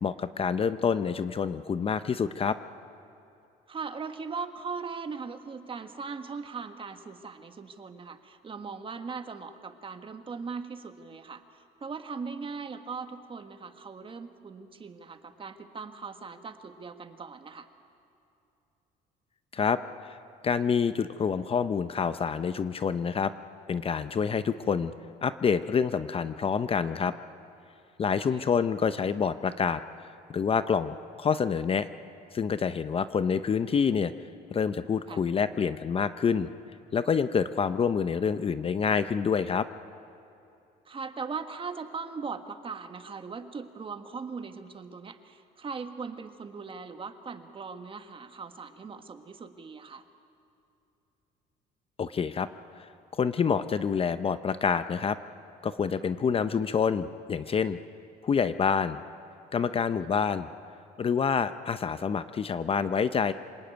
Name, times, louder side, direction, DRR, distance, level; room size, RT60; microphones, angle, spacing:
voice 1, 0.0-2.6 19.5-20.2 20.4-23.3 23.7-24.9 25.2-27.1 28.0-29.8 30.3-31.9 32.3-34.1 34.5-36.5 36.9-39.7 52.0-52.5 52.7-55.2 55.6-57.8 58.2-59.0 59.5-60.5 61.0-63.3, left 6 dB, 35° left, 12 dB, 0.7 m, -27 dB
voice 2, 3.7-17.7 28.2-28.4 35.1-35.2 40.9-50.0, right 5 dB, 30° right, 8 dB, 1.6 m, -39 dB
26.5 x 19.0 x 9.2 m, 2.7 s
cardioid pair, 110°, 17 cm